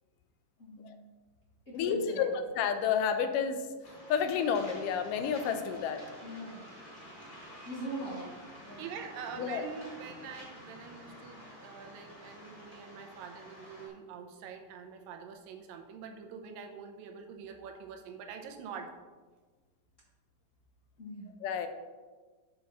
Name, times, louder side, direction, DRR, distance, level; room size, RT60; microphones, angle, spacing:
voice 1, 0.6-1.1 1.7-2.3 6.2-6.6 7.6-8.3 8.6-8.9 21.0-21.3, equal, 40° left, -7 dB, 1.1 m, -41 dB
voice 2, 1.7-3.7 4.1-6.0 9.4-9.7 21.4-21.7, left 7 dB, 80° left, 8 dB, 2.1 m, -30 dB
Waves surf, 3.8-13.9, equal, 25° left, 2.5 m, -50 dB
voice 3, 6.4-6.7 8.8-18.9, right 6 dB, 85° right, 5 dB, 2.5 m, -45 dB
8.4 x 6.4 x 4.0 m, 1.4 s
omnidirectional pair, 3.9 m